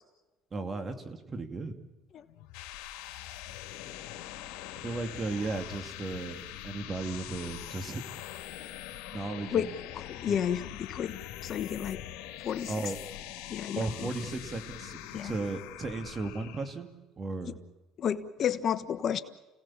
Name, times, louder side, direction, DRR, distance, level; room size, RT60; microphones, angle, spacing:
voice 1, 0.5-1.8 4.8-8.1 8.9-9.8 10.3-10.4 12.7-13.0 13.8-16.9 17.2-17.6, right 3 dB, 30° right, 7 dB, 2.6 m, -35 dB
sound 1, 2.3-16.8, left 13 dB, 80° left, 2.7 m, -43 dB
voice 2, 9.9-12.0 12.4-12.7 13.5-14.1 15.1-15.3 17.4-17.5 18.0-19.2, left 9 dB, 50° left, 11 dB, 1.2 m, -31 dB
29.5 x 18.0 x 7.3 m, 1.1 s
supercardioid pair, 100°, 0 cm